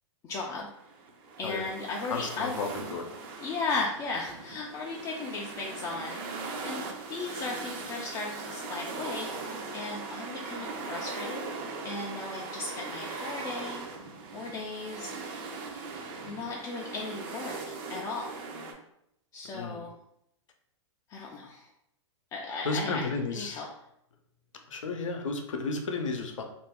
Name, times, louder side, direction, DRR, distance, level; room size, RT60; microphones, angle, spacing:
voice 1, 0.2-0.7 1.4-2.6 3.4-13.9 14.3-15.1 16.2-17.6 17.9-18.4 19.3-19.9 21.1-21.7 22.3-23.1 23.4-23.7, left 3 dB, 20° left, -2 dB, 0.3 m, -36 dB
sound 1, 0.7-18.7, right 3 dB, 45° right, 0.6 m, -40 dB
voice 2, 2.0-3.1 19.5-19.8 22.6-23.6 24.7-26.4, left 3 dB, 90° left, 4 dB, 0.6 m, -33 dB
2.5 x 2.3 x 3.4 m, 0.76 s
hypercardioid pair, 125°, 16 cm